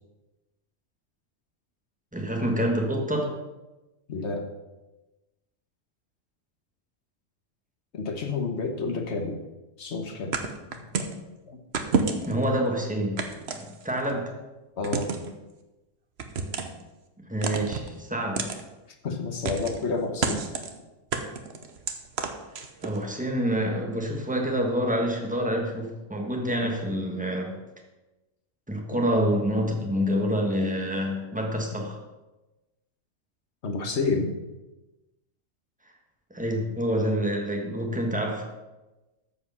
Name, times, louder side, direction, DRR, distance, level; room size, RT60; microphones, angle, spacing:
voice 1, 2.1-3.4 12.3-13.2 13.5-14.4 17.3-18.5 22.8-27.6 28.7-32.0 36.3-38.5, equal, 5° right, 1 dB, 1.6 m, -27 dB
voice 2, 4.1-4.5 7.9-9.4 9.8-10.3 10.7-10.8 11.5-11.6 14.8-15.1 19.0-20.4 28.9-29.0 33.6-34.3, left 4 dB, 60° left, 4 dB, 1.5 m, -29 dB
sound 1, 10.3-11.2 11.7-12.4 13.2-14.1 14.8-15.3 16.2-16.8 17.4-17.9 18.4-18.6 19.4-19.8 20.2-20.7 21.1-23.0, right 5 dB, 55° right, 1.1 m, -29 dB
13.5 x 5.0 x 5.7 m, 1.1 s
omnidirectional pair, 1.3 m